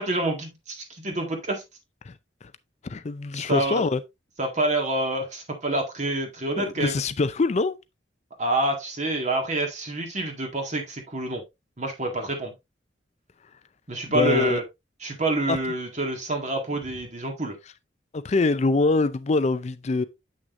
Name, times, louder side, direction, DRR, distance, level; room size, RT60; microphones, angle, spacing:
voice 1, 0.0-1.6 3.3-3.8 4.4-7.0 8.4-11.4 11.8-12.5 13.9-14.6 15.0-17.6, right 1 dB, 40° right, 1.8 m, -27 dB
voice 2, 2.8-4.0 6.6-7.8 14.0-14.6 15.5-15.6 18.1-20.0, left 3 dB, 40° left, 0.4 m, -24 dB
7.8 x 6.2 x 2.6 m
head